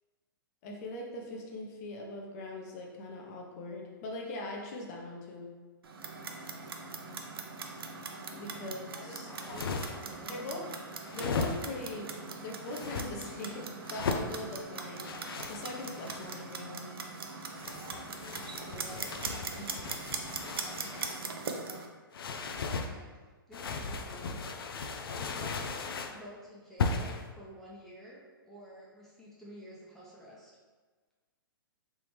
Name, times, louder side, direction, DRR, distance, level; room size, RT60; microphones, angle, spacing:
voice 1, 0.6-5.5 8.3-9.6 10.3-10.7 11.1-12.1 12.4-15.1 15.5-16.9 19.6-19.8, left 2 dB, 40° left, 0 dB, 0.8 m, -41 dB
Clock, 5.8-21.9, right 4 dB, 80° right, 0.5 m, -41 dB
voice 2, 8.9-10.5 17.6-19.0 22.7-24.4 25.1-25.8 26.1-30.5, equal, 5° left, -7 dB, 0.7 m, -51 dB
sound 1, 9.3-10.2 11.0-11.9 12.7-13.1 13.8-14.3 15.0-16.5 17.5-21.3 22.1-22.9 23.5-26.2 26.8-27.3, left 4 dB, 75° left, 0.4 m, -37 dB
3.4 x 2.9 x 3.1 m, 1.4 s
hypercardioid pair, 130°, 12 cm